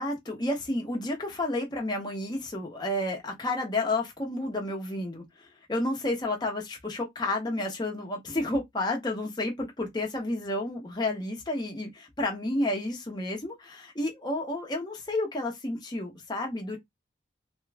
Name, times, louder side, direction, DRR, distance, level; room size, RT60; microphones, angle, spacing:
voice 1, 0.0-16.8, left 2 dB, 25° left, 0.9 m, -31 dB
3.0 x 2.3 x 3.3 m
head